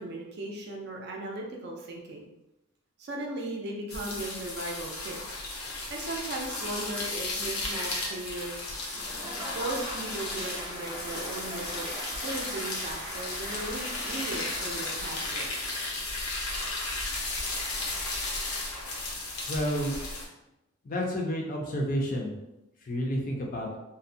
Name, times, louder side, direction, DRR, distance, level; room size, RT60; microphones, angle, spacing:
voice 1, 0.0-2.3 3.0-5.2 5.9-8.7 9.5-11.9 12.2-15.5, right 2 dB, 50° right, 0 dB, 0.4 m, -37 dB
sound 1, 3.9-20.3, left 2 dB, 85° left, 0.6 m, -35 dB
Applause / Crowd, 8.9-16.2, equal, 20° right, 0.7 m, -41 dB
voice 2, 19.5-20.0 20.8-22.3 22.9-23.8, equal, 40° left, 0 dB, 0.4 m, -30 dB
2.6 x 2.0 x 2.6 m, 0.92 s
head